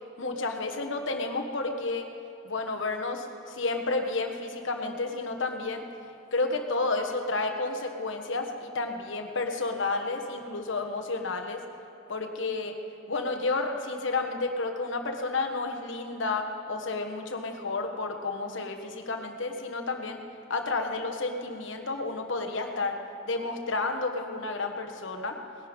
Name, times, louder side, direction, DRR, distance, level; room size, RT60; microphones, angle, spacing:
voice 1, 0.2-2.1 2.4-5.8 6.3-11.6 12.1-12.7 13.1-20.2 20.5-22.9 23.3-25.4, left 3 dB, 65° left, 3 dB, 1.4 m, -31 dB
19.0 x 11.0 x 5.3 m, 2.7 s
head